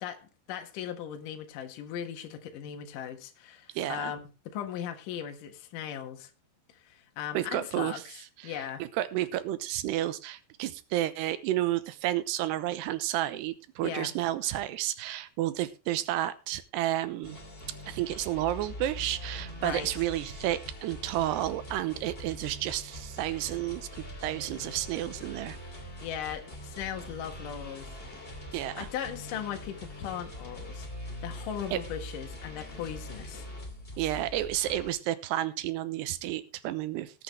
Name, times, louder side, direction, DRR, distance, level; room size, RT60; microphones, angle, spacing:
voice 1, 0.0-6.3 6.7-8.2 8.4-8.8 13.8-14.1 19.6-19.9 26.0-27.9 28.8-30.9 31.2-33.5, left 9 dB, 60° left, 5 dB, 2.8 m, -38 dB
voice 2, 3.7-4.1 7.3-8.0 8.4-17.4 17.9-25.6 28.5-28.9 31.7-31.8 34.0-37.2, right 14 dB, 85° right, 13 dB, 3.0 m, -31 dB
sound 1, 17.2-34.9, left 1 dB, 20° left, 1.9 m, -43 dB
19.0 x 8.4 x 3.3 m, 0.30 s
omnidirectional pair, 4.8 m